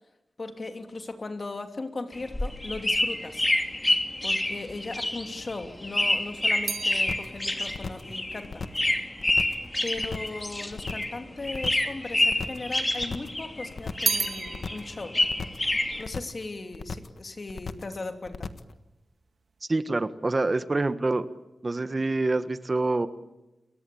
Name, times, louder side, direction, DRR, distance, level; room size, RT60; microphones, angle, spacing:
voice 1, 0.4-3.5 4.2-8.6 9.8-15.2 16.0-18.5, left 3 dB, 45° left, 6 dB, 2.9 m, -37 dB
sound 1, 2.1-11.2 11.4-13.7 14.0-16.0, left 1 dB, 20° left, 3.1 m, -27 dB
sound 2, 5.7-10.1 10.9-11.7 12.0-13.1 13.5-17.0 17.3-17.8, right 5 dB, 75° right, 1.5 m, -36 dB
sound 3, 7.1-7.4 7.7-8.1 8.4-8.9 9.2-9.7 10.0-10.4 10.7-11.2 11.5-11.9 12.2-12.7 13.0-13.4 13.7-14.2 14.5-14.9 15.2-15.7 16.0-16.4 16.7-17.2 17.5-18.0 18.3-18.7, left 4 dB, 70° left, 1.4 m, -37 dB
voice 2, 19.7-21.2 21.6-23.1, right 2 dB, 35° right, 11 dB, 1.4 m, -26 dB
29.5 x 22.0 x 8.5 m, 0.97 s
wide cardioid pair, 80°, 0 cm